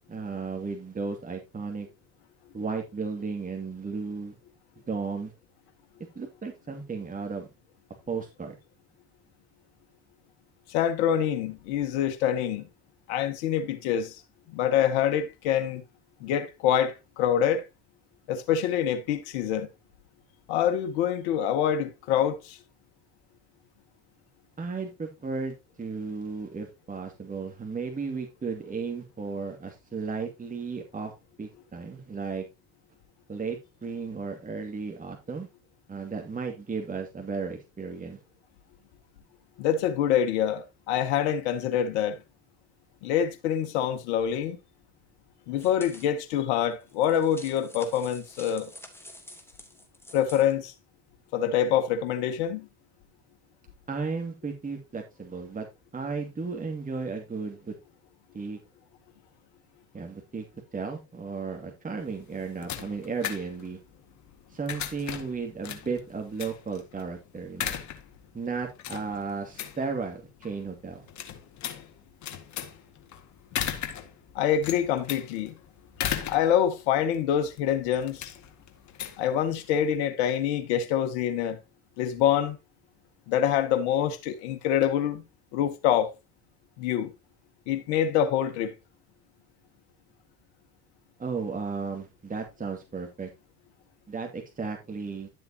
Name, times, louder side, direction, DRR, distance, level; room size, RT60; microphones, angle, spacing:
voice 1, 0.1-1.9 2.5-4.4 4.9-5.3 6.2-7.5 8.1-8.5 24.6-31.1 31.4-32.5 33.3-35.5 35.9-38.2 53.9-55.7 55.9-57.7 58.3-58.6 59.9-60.5 60.7-63.8 64.5-67.8 68.3-71.1 91.2-93.3 94.1-95.3, right 4 dB, 25° right, 2.4 m, -34 dB
voice 2, 10.7-12.7 13.1-14.2 14.5-15.8 16.2-17.6 18.3-19.7 20.5-22.6 39.6-42.2 43.0-44.6 45.5-48.7 50.1-50.7 51.3-52.7 74.4-75.5 76.0-78.3 79.2-81.6 82.0-82.6 83.3-85.2 85.5-86.1 86.8-87.1 87.7-88.7, left 9 dB, 75° left, 1.9 m, -26 dB
sound 1, 45.6-46.1 46.8-50.5, left 1 dB, 5° left, 3.1 m, -48 dB
sound 2, 62.0-80.0, left 10 dB, 55° left, 2.0 m, -38 dB
11.5 x 7.5 x 2.9 m
hypercardioid pair, 75°, 35 cm